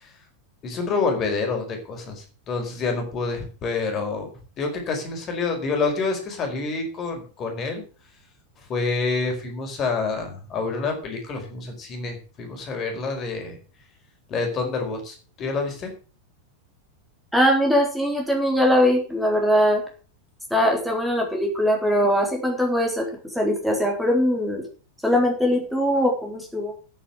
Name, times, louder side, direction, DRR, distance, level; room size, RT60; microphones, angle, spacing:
voice 1, 0.6-4.3 4.6-7.8 8.7-13.6 14.3-15.9, left 4 dB, 30° left, 4 dB, 4.7 m, -27 dB
voice 2, 17.3-19.8 20.5-23.1 23.3-24.6 25.0-26.7, equal, ahead, 0 dB, 3.8 m, -21 dB
10.0 x 9.4 x 7.9 m, 0.38 s
figure-of-eight pair, 90°, 0 cm